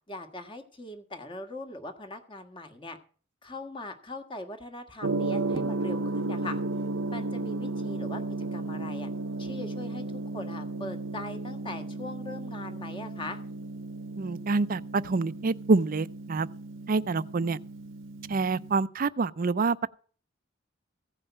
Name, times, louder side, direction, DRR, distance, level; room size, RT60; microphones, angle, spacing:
voice 1, 0.1-3.0 3.4-6.6 7.1-8.2 8.5-9.1 9.4-10.0 10.3-13.4, left 2 dB, 25° left, 1.6 m, -40 dB
Gong, 5.0-18.8, right 2 dB, 70° right, 0.8 m, -34 dB
voice 2, 14.2-16.5 16.9-17.6 18.3-19.9, right 3 dB, 45° right, 0.5 m, -26 dB
16.0 x 5.5 x 8.1 m
head